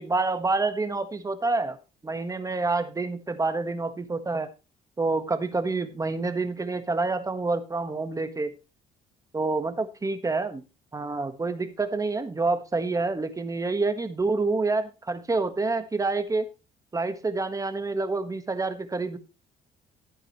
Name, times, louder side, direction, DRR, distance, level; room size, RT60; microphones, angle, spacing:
voice 1, 0.0-1.8 2.0-4.5 5.0-8.5 9.3-10.6 10.9-16.5 16.9-19.2, right 3 dB, 20° right, 10 dB, 1.4 m, -27 dB
14.5 x 8.8 x 3.1 m, 0.29 s
cardioid pair, 110°, 17 cm